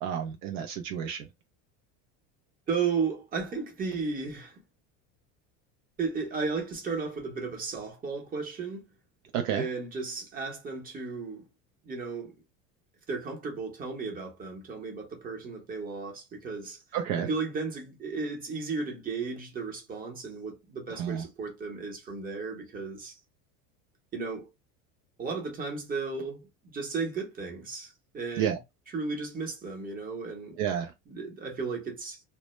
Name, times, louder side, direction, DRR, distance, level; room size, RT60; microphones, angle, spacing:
voice 1, 0.0-1.3 9.3-9.6 16.9-17.3 21.0-21.2 28.4-28.6 30.6-30.9, right 9 dB, 65° right, 0.5 m, -30 dB
voice 2, 2.7-4.6 6.0-8.8 9.5-11.4 11.8-12.3 13.1-16.8 17.2-23.2 24.1-24.5 25.2-28.6 28.9-30.6 31.1-32.2, right 4 dB, 25° right, 0.8 m, -34 dB
2.1 x 2.0 x 3.0 m
supercardioid pair, 130°, 37 cm